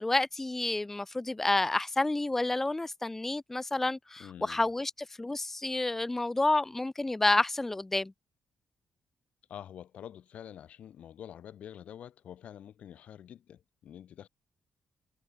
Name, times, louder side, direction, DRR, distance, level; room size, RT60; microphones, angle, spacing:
voice 1, 0.0-4.9 5.2-8.1, left 2 dB, 15° left, 0.4 m, -29 dB
voice 2, 4.2-4.7 9.5-14.3, left 10 dB, 70° left, 1.0 m, -47 dB
cardioid pair, 105°, 2 cm